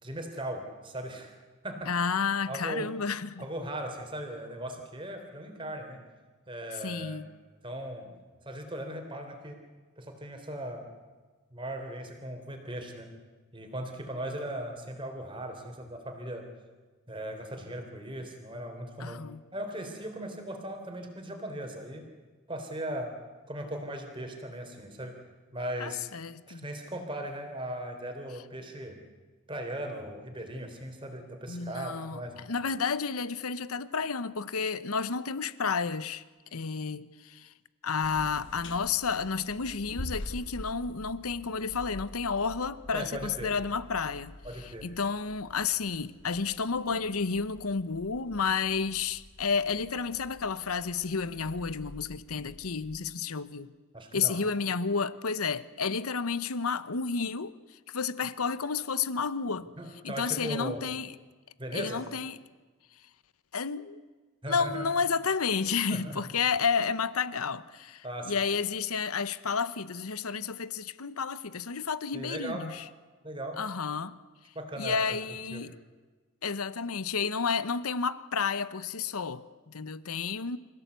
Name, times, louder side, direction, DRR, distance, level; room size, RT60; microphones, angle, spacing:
voice 1, 0.0-1.4 1.6-1.9 2.5-2.9 3.4-6.0 6.5-7.2 7.6-8.1 8.5-9.6 10.0-10.9 11.5-13.1 13.5-16.5 17.1-19.2 19.5-22.0 22.5-23.2 23.5-25.2 25.5-26.1 26.5-29.0 29.5-32.5 42.9-43.5 44.4-44.9 53.9-54.4 59.8-60.8 61.6-62.0 64.4-64.9 65.9-66.3 68.0-68.3 72.1-72.7 73.2-73.6 74.6-75.0 75.5-75.7, right 1 dB, 25° right, 3.6 m, -38 dB
voice 2, 1.9-3.4 6.8-7.3 19.0-19.4 25.8-26.7 31.5-36.2 36.5-37.5 37.8-53.7 54.1-57.6 57.9-59.7 60.0-61.1 61.7-62.4 63.5-64.0 64.5-72.8 73.6-74.2 74.8-75.7 76.4-80.6, left 5 dB, 85° left, 0.9 m, -31 dB
sound 1, 38.0-53.0, left 1 dB, 55° left, 1.3 m, -47 dB
27.0 x 16.0 x 8.3 m
head